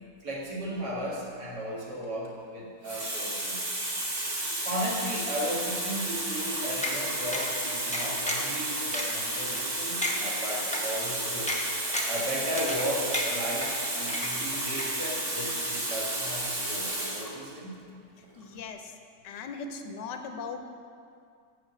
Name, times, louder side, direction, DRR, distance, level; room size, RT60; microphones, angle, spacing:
voice 1, 0.2-3.6 4.6-11.6 12.1-16.9 17.1-17.7, equal, 70° right, -5 dB, 2.2 m, -35 dB
Water tap faucet, 2.0-2.3 2.8-17.3 18.2-18.4, right 1 dB, 25° right, 0.9 m, -32 dB
sound 1, 6.8-7.0 7.3-7.5 7.9-8.5 8.9-9.0 9.6-9.7 10.0-10.2 10.7-10.8 11.5-11.6 11.9-12.2 12.6-12.9 13.1-13.7 14.1-14.5 14.8-14.9, left 1 dB, 10° left, 0.4 m, -32 dB
voice 2, 18.4-19.0 19.2-20.6, left 5 dB, 75° left, 6 dB, 1.3 m, -38 dB
6.3 x 6.2 x 7.1 m, 2.3 s
omnidirectional pair, 1.9 m